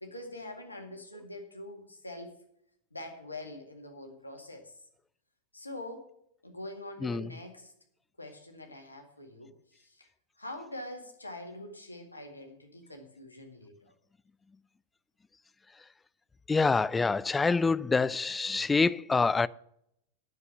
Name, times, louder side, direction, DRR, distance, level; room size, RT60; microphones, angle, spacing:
voice 1, 0.0-2.3 2.9-4.7 5.5-6.1 6.4-7.7 8.2-10.1 10.4-13.9, left 1 dB, 80° left, 2.0 m, -44 dB
voice 2, 16.5-19.5, left 4 dB, 10° left, 0.3 m, -26 dB
9.5 x 6.9 x 7.5 m
figure-of-eight pair, 90°, 0 cm